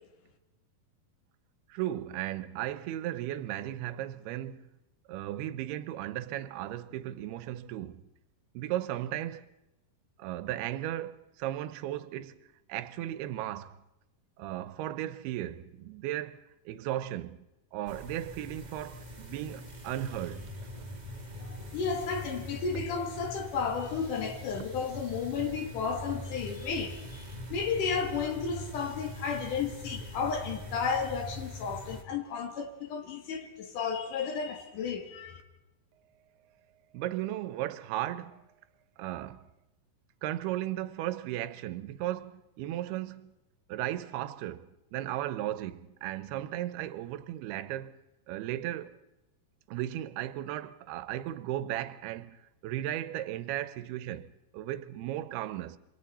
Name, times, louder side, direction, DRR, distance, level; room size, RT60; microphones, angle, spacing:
voice 1, 1.7-4.7 5.1-8.0 8.5-9.4 10.2-12.4 12.7-13.8 14.4-17.4 17.7-20.9 36.9-38.4 39.0-39.5 40.2-43.3 43.7-48.0 48.3-49.0 49.7-52.4 52.6-55.8, right 13 dB, 85° right, 2.8 m, -36 dB
sound 1, 17.9-32.0, left 1 dB, 20° right, 1.2 m, -42 dB
voice 2, 21.4-35.4, left 5 dB, 60° left, 3.1 m, -33 dB
27.5 x 24.0 x 4.2 m
omnidirectional pair, 4.4 m